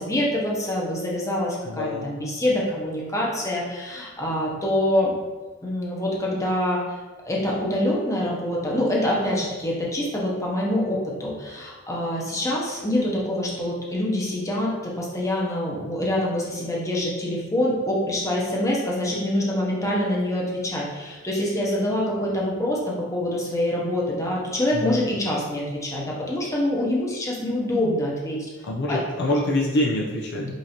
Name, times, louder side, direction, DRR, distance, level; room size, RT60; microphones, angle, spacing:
voice 1, 0.0-5.1 5.6-6.8 7.2-28.5 28.9-29.0 30.3-30.5, left 1 dB, 15° left, -4 dB, 0.8 m, -25 dB
voice 2, 1.7-2.2 24.7-25.1 28.6-30.5, left 1 dB, 55° left, -2 dB, 0.5 m, -25 dB
5.4 x 2.7 x 2.9 m, 1.3 s
head